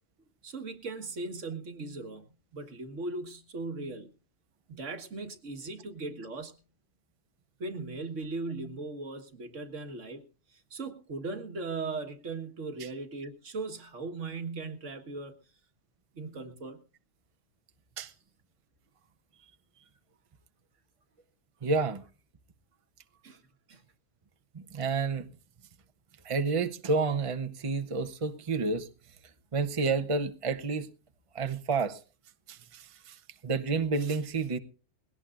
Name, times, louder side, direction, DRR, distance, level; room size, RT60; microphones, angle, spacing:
voice 1, 0.4-2.2 2.5-4.1 4.7-6.5 7.6-10.2 10.5-15.4 16.2-16.8 23.2-23.4 23.7-23.8, right 3 dB, 75° right, 1.9 m, -38 dB
voice 2, 21.6-22.0 24.5-25.3 26.2-28.9 29.5-30.9 31.3-32.0 32.5-34.6, right 4 dB, 30° right, 0.9 m, -30 dB
21.0 x 17.0 x 2.5 m
omnidirectional pair, 1.3 m